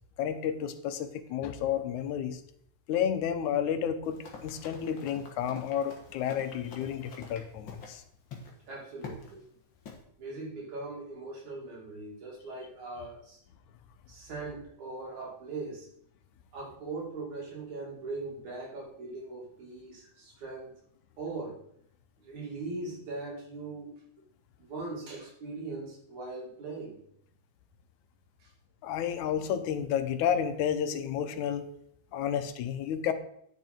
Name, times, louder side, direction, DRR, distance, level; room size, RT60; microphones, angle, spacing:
voice 1, 0.2-2.4 2.9-8.0 28.8-31.7 32.1-33.1, left 9 dB, 85° left, 9 dB, 2.2 m, -31 dB
Run, 4.0-8.0 8.3-8.5 9.0-9.3 9.9-10.0, left 4 dB, 50° left, 1.9 m, -47 dB
voice 2, 8.7-9.4 10.2-13.4 14.1-15.9 16.5-20.8 21.2-21.6 22.2-24.0 24.6-27.0 28.4-28.5, right 3 dB, 75° right, -3 dB, 3.9 m, -40 dB
9.9 x 6.4 x 4.4 m, 0.69 s
omnidirectional pair, 3.4 m